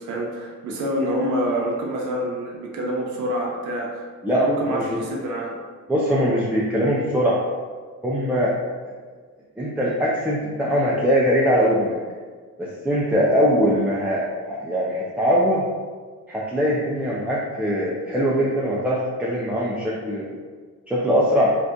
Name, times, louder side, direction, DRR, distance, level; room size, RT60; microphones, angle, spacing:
voice 1, 0.0-4.0 4.3-5.5, equal, 80° right, -1 dB, 0.6 m, -26 dB
voice 2, 4.2-5.0 5.9-7.4 8.0-8.5 8.8-8.9 9.6-12.0 12.6-15.6 16.3-20.4 20.9-21.5, equal, 5° right, -6 dB, 0.4 m, -21 dB
2.6 x 2.4 x 3.6 m, 1.5 s
cardioid pair, 90°, 30 cm